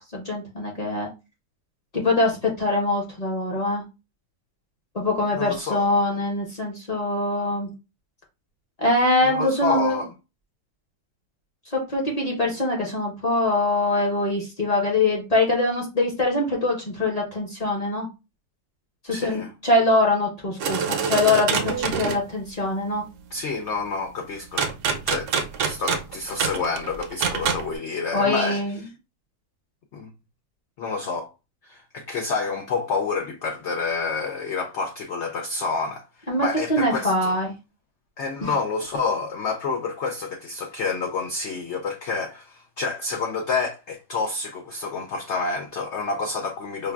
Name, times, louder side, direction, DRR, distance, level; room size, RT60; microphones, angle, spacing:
voice 1, 0.1-1.1 1.9-3.8 4.9-7.7 8.8-10.0 11.7-18.1 19.0-23.0 28.1-28.8 36.3-37.5 38.4-38.5, left 2 dB, 35° left, 0.7 m, -23 dB
voice 2, 5.3-6.0 9.2-10.1 19.1-19.5 23.3-24.7 25.1-28.6 29.9-30.1 30.8-31.3 31.6-37.3 38.2-46.9, left 4 dB, 70° left, 0.7 m, -28 dB
sound 1, 20.6-22.2 24.6-27.7, right 6 dB, 65° right, 0.8 m, -25 dB
5.0 x 2.3 x 2.3 m
omnidirectional pair, 1.7 m